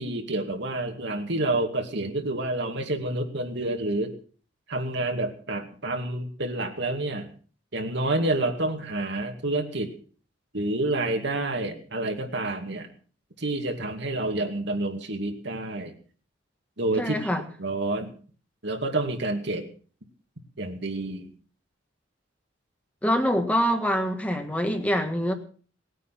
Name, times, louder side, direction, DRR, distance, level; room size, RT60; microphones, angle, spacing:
voice 1, 0.0-4.2 4.7-7.3 7.7-9.9 10.5-12.9 13.4-15.9 16.8-17.2 17.6-18.1 18.6-19.7 20.6-21.3, right 2 dB, 65° right, 2.4 m, -28 dB
voice 2, 17.0-17.4 23.0-25.3, equal, 10° left, 1.7 m, -25 dB
19.5 x 9.4 x 6.0 m
head